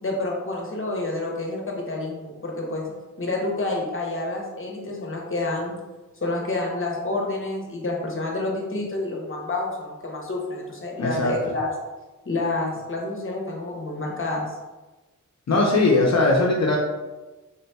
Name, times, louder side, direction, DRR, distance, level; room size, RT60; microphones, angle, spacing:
voice 1, 0.0-2.9 3.2-5.8 6.2-11.7 12.3-14.5, left 2 dB, 40° left, -1 dB, 0.9 m, -28 dB
voice 2, 11.0-11.3 15.5-16.8, left 2 dB, 55° left, -1 dB, 0.6 m, -19 dB
3.9 x 3.6 x 2.3 m, 1.1 s
wide cardioid pair, 115°, 31 cm